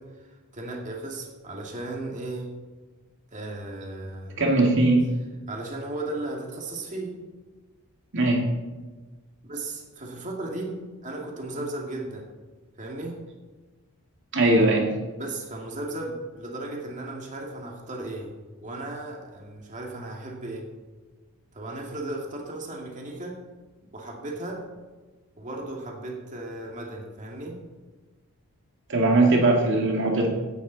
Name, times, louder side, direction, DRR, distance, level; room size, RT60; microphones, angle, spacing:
voice 1, 0.0-2.5 3.3-4.4 5.5-7.2 9.4-12.3 12.8-13.2 15.2-18.4 18.6-20.7 21.5-23.4 23.8-24.7 25.4-27.6, right 2 dB, 35° right, 0 dB, 2.2 m, -35 dB
voice 2, 4.4-5.0 8.1-8.4 14.3-14.9 28.9-30.3, right 2 dB, 60° right, 0 dB, 2.2 m, -20 dB
17.0 x 11.0 x 4.1 m, 1.3 s
head